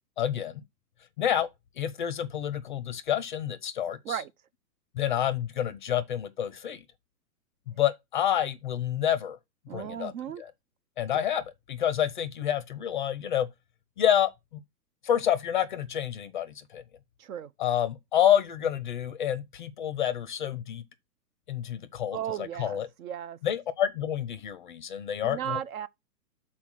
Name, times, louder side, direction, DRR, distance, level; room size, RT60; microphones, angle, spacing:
voice 1, 0.2-0.6 1.2-1.5 1.8-4.2 4.9-6.9 7.7-9.4 9.7-10.1 10.4-10.5 11.0-13.5 14.0-14.3 15.0-16.8 17.6-20.8 21.5-22.9 23.4-25.6, left 10 dB, 30° left, 0.5 m, -28 dB
voice 2, 9.7-10.4 17.2-17.5 22.1-23.4 25.2-25.9, right 9 dB, 60° right, 0.5 m, -35 dB
5.8 x 4.3 x 6.2 m
hypercardioid pair, 135°, 49 cm